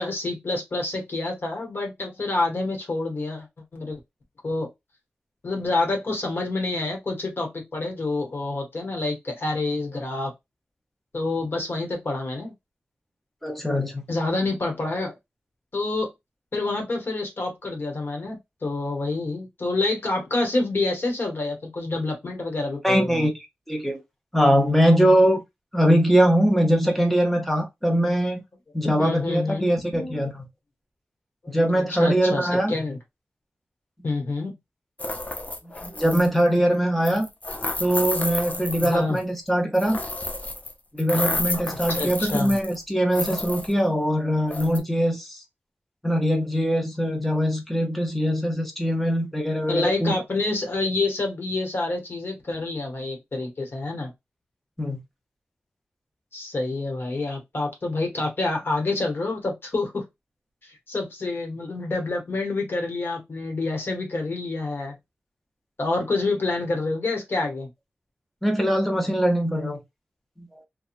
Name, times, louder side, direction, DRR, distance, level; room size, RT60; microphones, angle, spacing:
voice 1, 0.0-3.5 3.7-4.0 4.4-4.7 5.4-10.3 11.1-12.5 14.1-15.1 15.7-16.1 16.5-23.3 28.8-29.7 29.9-30.2 31.4-33.0 34.0-34.6 38.8-39.2 41.9-42.6 49.7-54.1 56.3-60.1 60.6-65.0 65.8-67.7, left 2 dB, 65° left, 1.2 m, -27 dB
voice 2, 13.4-14.0 22.8-23.3 23.7-24.0 24.3-25.4 25.7-28.4 28.7-30.4 31.5-32.7 35.8-37.3 37.8-40.0 40.9-45.4 46.0-50.1 54.8-55.0 68.4-69.8 70.4-70.5, equal, 5° left, 0.8 m, -22 dB
sound 1, 35.0-36.4 37.1-39.2 39.7-40.7 41.0-42.8 43.1-43.7 44.5-44.8, left 2 dB, 35° left, 0.6 m, -30 dB
2.9 x 2.3 x 2.5 m
wide cardioid pair, 80°, 4 cm